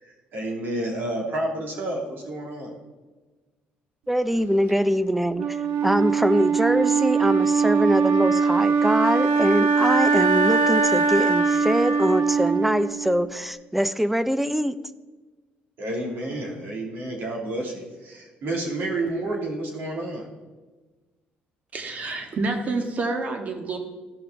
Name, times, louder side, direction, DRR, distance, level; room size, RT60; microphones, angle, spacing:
voice 1, 0.0-2.8 15.8-20.3, right 1 dB, 60° right, 2.7 m, -30 dB
voice 2, 4.1-14.8, equal, 5° right, 0.4 m, -23 dB
Wind instrument woodwind instrument, 5.4-13.4, right 5 dB, 80° right, 0.9 m, -21 dB
voice 3, 21.7-23.8, right 3 dB, 40° right, 1.6 m, -28 dB
15.0 x 5.5 x 3.9 m
cardioid pair, 120°, 4 cm